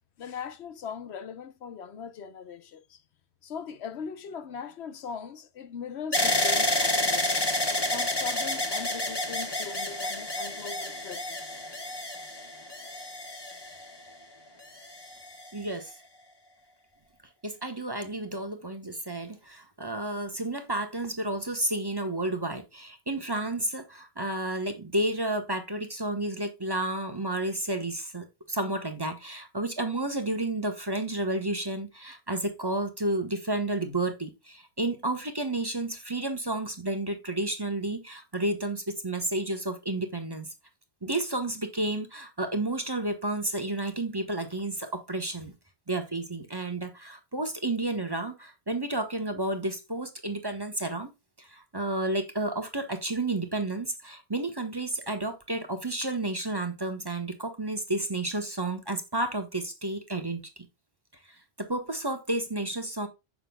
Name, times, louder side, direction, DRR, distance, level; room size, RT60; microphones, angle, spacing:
voice 1, 0.2-3.0 3.4-7.4 7.9-11.6 13.2-13.6, left 6 dB, 75° left, 1.0 m, -40 dB
sound 1, 6.1-14.1 14.8-15.5, left 1 dB, 20° left, 1.3 m, -29 dB
voice 2, 15.5-15.9 17.4-40.5 41.0-45.5 45.9-51.1 51.4-60.6 61.2-63.1, right 2 dB, 20° right, 1.1 m, -31 dB
7.5 x 6.0 x 2.2 m
omnidirectional pair, 1.1 m